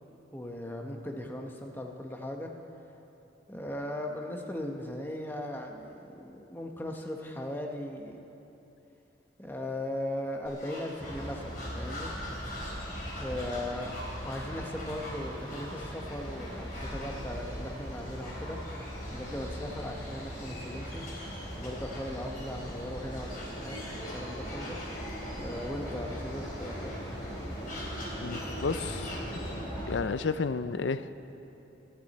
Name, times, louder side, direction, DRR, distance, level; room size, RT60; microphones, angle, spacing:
voice 1, 0.3-2.5 3.5-8.2 9.4-12.1 13.2-14.0 14.2-18.6 19.1-21.0 21.6-24.8 25.4-27.0, left 1 dB, 10° left, 2 dB, 1.0 m, -38 dB
sound 1, 10.5-29.6, left 1 dB, 50° left, 3.5 m, -45 dB
sound 2, 11.0-30.0, equal, 25° left, 3.9 m, -39 dB
voice 2, 28.2-29.2 29.9-31.1, left 4 dB, 80° left, 13 dB, 0.5 m, -31 dB
24.5 x 11.0 x 4.2 m, 3.0 s
head